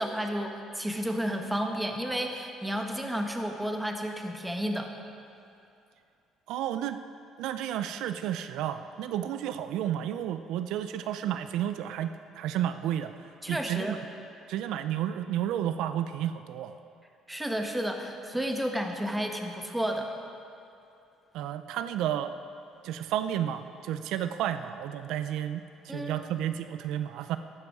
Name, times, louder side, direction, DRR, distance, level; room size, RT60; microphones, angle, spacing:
voice 1, 0.0-4.9 13.4-14.0 17.3-20.1 25.9-26.3, equal, 5° right, 3 dB, 1.2 m, -32 dB
voice 2, 6.5-7.0 7.4-13.1 13.5-14.0 14.5-16.7 21.3-22.3 22.8-27.4, right 11 dB, 75° right, 11 dB, 0.5 m, -32 dB
14.0 x 11.5 x 4.8 m, 2.6 s
cardioid pair, 120°, 0 cm